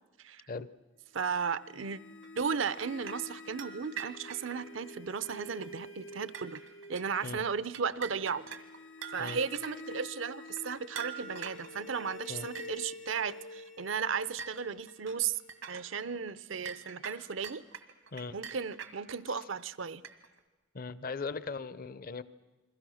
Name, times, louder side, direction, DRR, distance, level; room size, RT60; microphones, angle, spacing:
voice 1, 1.1-2.0 2.4-6.6 6.9-8.4 9.1-15.4 15.7-17.6 18.3-20.0, right 6 dB, 70° right, 16 dB, 0.7 m, -35 dB
sound 1, 1.2-16.2, left 2 dB, 75° left, 2.9 m, -49 dB
sound 2, 2.2-4.6 5.2-5.3 5.6-5.9 6.1-7.3 7.6-10.0 10.5-12.1 12.5-12.7 13.1-13.4 13.8-13.9 14.4-15.9 16.3-16.4 16.7-19.2 19.6-20.4, right 7 dB, 85° right, 1.8 m, -44 dB
voice 2, 20.7-22.2, left 4 dB, 45° left, 16 dB, 0.7 m, -38 dB
29.5 x 22.0 x 6.4 m, 1.2 s
head